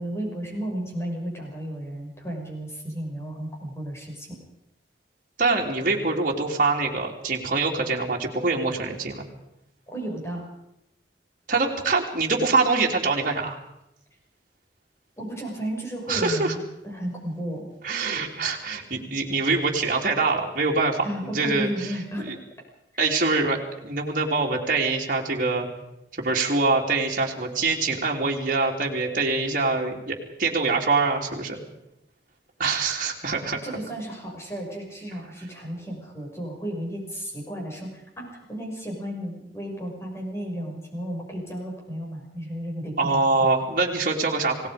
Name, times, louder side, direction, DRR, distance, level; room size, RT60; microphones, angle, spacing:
voice 1, 0.0-4.4 9.9-10.5 15.2-17.6 21.0-22.4 33.6-43.2, right 1 dB, 15° left, -1 dB, 6.7 m, -33 dB
voice 2, 5.4-9.2 11.5-13.6 16.1-16.5 17.8-21.0 21.3-21.7 22.3-22.4 23.0-25.7 26.2-31.6 32.6-33.6 43.0-44.7, right 3 dB, 50° right, -1 dB, 3.3 m, -24 dB
27.5 x 19.0 x 5.2 m, 0.85 s
head